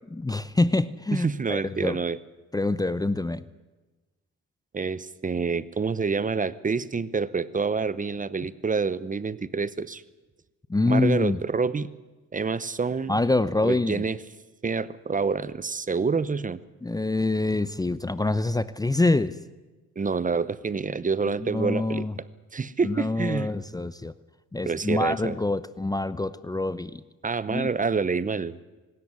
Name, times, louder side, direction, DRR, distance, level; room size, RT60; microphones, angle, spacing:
voice 1, 0.1-2.0 2.5-3.4 10.7-11.4 13.1-14.0 16.8-19.4 21.3-22.1 22.8-24.1 24.5-27.0 27.5-27.7, left 2 dB, 10° left, 16 dB, 0.7 m, -26 dB
voice 2, 1.1-2.2 4.7-10.0 10.8-11.9 12.3-13.1 13.6-14.2 14.6-16.6 20.0-22.1 22.5-23.5 24.6-25.4 27.2-28.6, right 5 dB, 25° right, 18 dB, 0.8 m, -27 dB
24.5 x 13.5 x 9.6 m, 1.2 s
cardioid pair, 90°, 30 cm